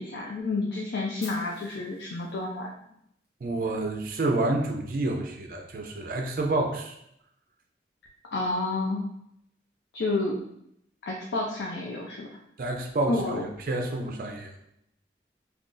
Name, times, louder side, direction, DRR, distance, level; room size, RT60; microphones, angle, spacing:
voice 1, 0.0-2.8 8.3-9.0 9.9-10.4 11.0-12.3 13.1-13.4, left 2 dB, 75° left, -1 dB, 0.4 m, -30 dB
Fire, 1.2-3.3, left 1 dB, 15° left, 0.7 m, -49 dB
voice 2, 3.4-7.0 12.6-14.5, right 2 dB, 50° right, 2 dB, 0.4 m, -29 dB
2.5 x 2.3 x 3.7 m, 0.75 s
head